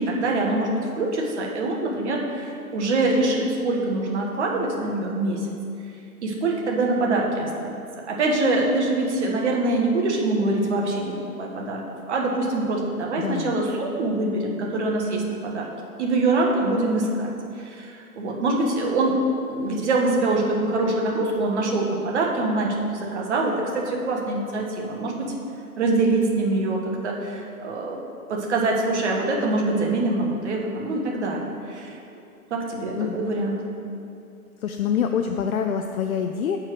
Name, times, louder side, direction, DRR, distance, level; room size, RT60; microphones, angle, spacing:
voice 1, 0.0-5.4 6.2-11.1 11.4-15.7 16.0-17.3 17.6-25.3 25.8-28.0 28.3-32.0 32.5-33.6, right 2 dB, 50° right, -1 dB, 1.4 m, -24 dB
voice 2, 13.2-13.6 33.0-33.5 34.6-36.6, left 7 dB, 65° left, 5 dB, 0.6 m, -26 dB
7.3 x 4.5 x 6.5 m, 2.6 s
hypercardioid pair, 150°, 45 cm